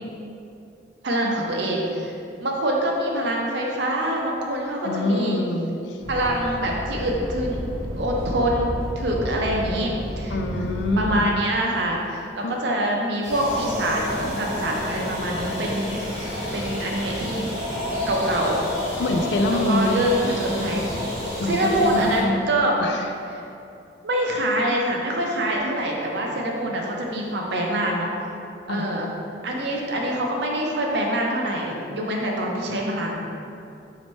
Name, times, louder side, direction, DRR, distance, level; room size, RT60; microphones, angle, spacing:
voice 1, 1.0-2.1 2.4-5.4 6.1-7.6 8.0-10.4 11.0-17.5 18.1-18.7 19.5-20.8 21.4-22.8 23.3-23.4 24.0-28.1 28.7-29.1 29.4-33.2, right 1 dB, 70° right, -1 dB, 0.5 m, -25 dB
voice 2, 4.8-6.0 10.3-11.3 12.4-12.6 19.0-20.0 21.4-22.5 22.8-23.1 28.7-28.8, left 2 dB, 70° left, 4 dB, 0.3 m, -25 dB
sound 1, 6.0-11.2, equal, 15° left, 0.8 m, -31 dB
sound 2, 13.2-22.2, equal, 40° left, 1.3 m, -34 dB
sound 3, 13.3-21.9, left 1 dB, 20° right, 1.1 m, -31 dB
4.3 x 2.8 x 3.1 m, 2.6 s
head